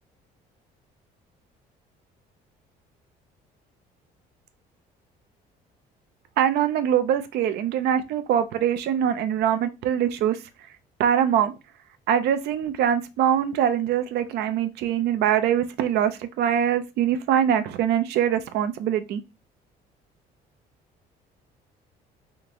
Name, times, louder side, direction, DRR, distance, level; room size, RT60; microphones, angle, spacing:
voice 1, 6.4-10.4 11.0-11.5 12.1-19.2, right 9 dB, 75° right, 0.5 m, -23 dB
3.6 x 2.6 x 2.9 m
cardioid pair, 110°, 17 cm